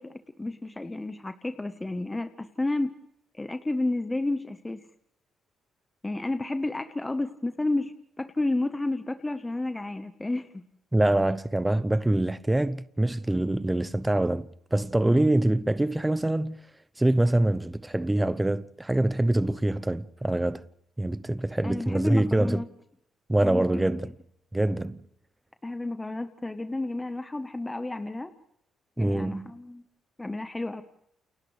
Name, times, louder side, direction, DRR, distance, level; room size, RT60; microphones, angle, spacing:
voice 1, 0.0-2.9 3.3-4.8 6.0-10.6 21.6-22.7 23.4-23.9 25.6-28.3 29.0-29.8 30.2-30.8, left 2 dB, 15° left, 1.2 m, -31 dB
voice 2, 10.9-16.6 17.0-20.6 21.0-22.6 23.3-24.1 24.5-25.0 29.0-29.5, right 1 dB, 10° right, 0.7 m, -25 dB
29.5 x 28.0 x 3.3 m
cardioid pair, 90°, 0 cm